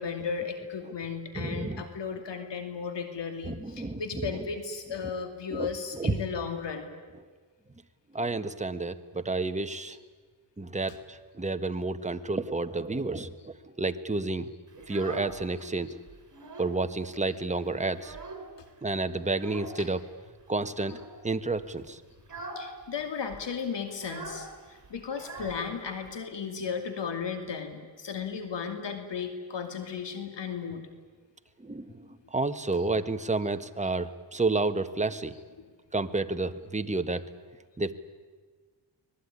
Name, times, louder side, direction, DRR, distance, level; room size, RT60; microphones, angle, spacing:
voice 1, 0.0-6.9 10.9-11.0 19.8-19.9 22.5-30.8 35.6-35.7, left 6 dB, 70° left, 7 dB, 2.7 m, -35 dB
voice 2, 1.3-1.8 3.5-4.0 5.5-5.7 6.0-6.2 8.1-10.0 10.6-14.5 14.9-16.0 16.6-18.2 18.8-20.0 20.5-21.0 21.2-22.0 31.6-31.9 32.3-35.3 35.9-37.2 37.8-37.9, right 3 dB, 15° right, 9 dB, 1.4 m, -30 dB
Child speech kid speaking, 14.7-15.7 16.1-16.8 17.1-17.2 17.6-18.7 19.3-19.8 20.7-21.2 21.6-21.8 22.2-22.7 23.0-23.1 23.3-26.1, right 2 dB, 40° right, 5.1 m, -42 dB
25.5 x 19.5 x 9.8 m, 1.5 s
cardioid pair, 80°, 44 cm